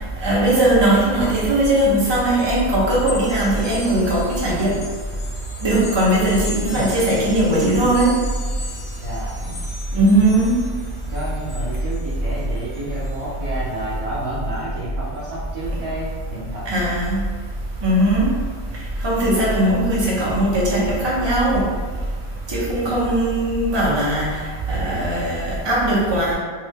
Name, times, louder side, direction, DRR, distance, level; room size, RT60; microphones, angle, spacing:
voice 1, 0.2-4.7 5.6-8.2 9.9-10.6 16.7-17.2 17.8-18.3 19.0-21.6 22.5-24.3 24.7-26.3, right 1 dB, 25° right, -6 dB, 0.7 m, -19 dB
sound 1, 1.2-13.2, left 3 dB, 60° left, 0.8 m, -39 dB
voice 2, 8.9-9.5 11.1-16.6 22.8-23.0, right 1 dB, 85° right, -11 dB, 1.5 m, -30 dB
3.3 x 2.6 x 3.5 m, 1.5 s
omnidirectional pair, 1.5 m